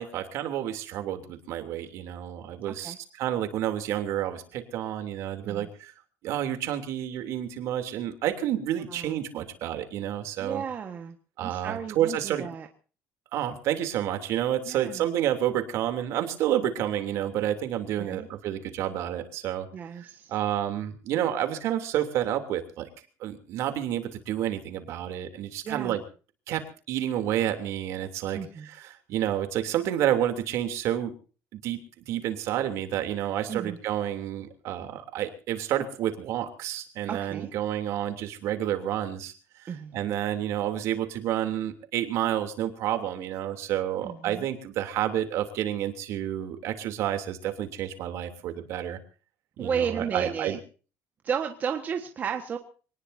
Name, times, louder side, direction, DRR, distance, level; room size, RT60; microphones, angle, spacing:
voice 1, 0.0-5.9 6.2-10.6 11.4-12.5 13.3-19.7 20.0-22.9 23.2-26.0 26.5-28.4 29.1-31.1 31.5-39.3 39.6-49.0 49.6-50.6, right 11 dB, 60° right, 7 dB, 3.1 m, -29 dB
voice 2, 2.7-3.0 5.4-5.7 8.9-9.2 10.4-11.2 11.4-12.7 14.6-15.1 18.0-18.3 19.7-20.3 25.6-26.0 28.3-28.7 33.5-33.8 37.1-37.5 39.7-40.0 44.0-44.5 49.6-50.6 51.2-52.6, right 7 dB, 30° right, 4 dB, 1.5 m, -33 dB
25.0 x 19.0 x 2.7 m, 0.38 s
cardioid pair, 155°, 6 cm